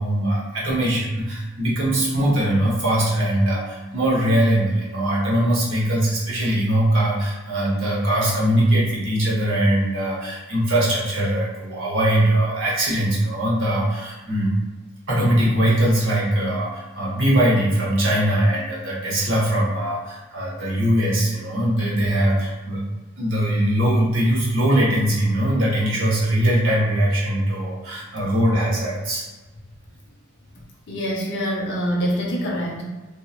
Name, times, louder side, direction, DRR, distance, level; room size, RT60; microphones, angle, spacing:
voice 1, 0.0-14.5 15.1-22.8 23.2-29.2, right 1 dB, 60° right, -5 dB, 0.8 m, -21 dB
voice 2, 30.9-32.8, equal, 55° left, -2 dB, 0.6 m, -25 dB
2.8 x 2.2 x 2.3 m, 1.2 s
head